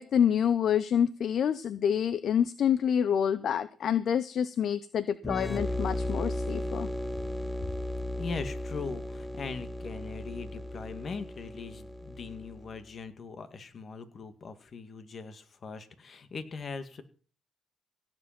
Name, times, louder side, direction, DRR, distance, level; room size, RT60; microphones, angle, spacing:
voice 1, 0.0-6.9, left 8 dB, 65° left, 15 dB, 0.7 m, -27 dB
sound 1, 5.2-12.8, left 1 dB, 10° left, 0.9 m, -35 dB
voice 2, 8.2-17.0, left 4 dB, 50° left, 9 dB, 2.0 m, -40 dB
17.0 x 7.9 x 5.9 m, 0.40 s
supercardioid pair, 70°, 0 cm